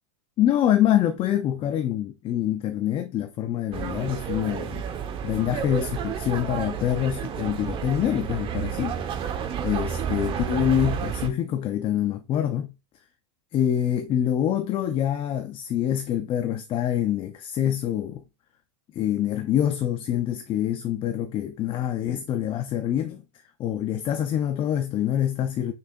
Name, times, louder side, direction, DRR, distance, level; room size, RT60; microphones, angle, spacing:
voice 1, 0.4-4.8 5.2-9.0 9.6-12.7 13.5-18.2 18.9-23.2 23.6-25.7, left 11 dB, 35° left, 0.7 m, -25 dB
sound 1, 3.7-11.3, right 8 dB, 35° right, 1.2 m, -31 dB
6.7 x 5.7 x 2.6 m
supercardioid pair, 125°, 16 cm